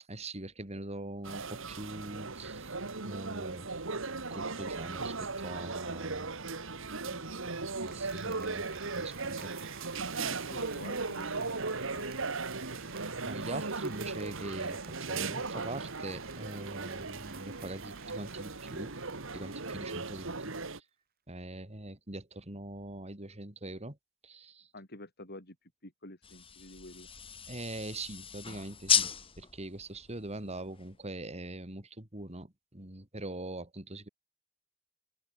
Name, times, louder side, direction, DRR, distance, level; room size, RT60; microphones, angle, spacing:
voice 1, 0.1-2.7 3.0-3.7 4.3-6.3 7.8-9.5 13.3-14.8 15.1-18.9 19.3-20.8 21.3-24.0 24.2-24.7 27.5-29.1 29.4-34.1, right 2 dB, 30° right, 3.3 m, -42 dB
sound 1, 1.2-20.8, right 3 dB, 65° right, 2.3 m, -37 dB
voice 2, 7.0-7.5 10.2-12.1 24.7-27.1, left 1 dB, 50° left, 7.3 m, -49 dB
Applause, 7.5-20.5, right 9 dB, 50° right, 2.0 m, -55 dB
sound 2, 26.2-31.1, left 7 dB, 25° left, 1.5 m, -35 dB
open air
head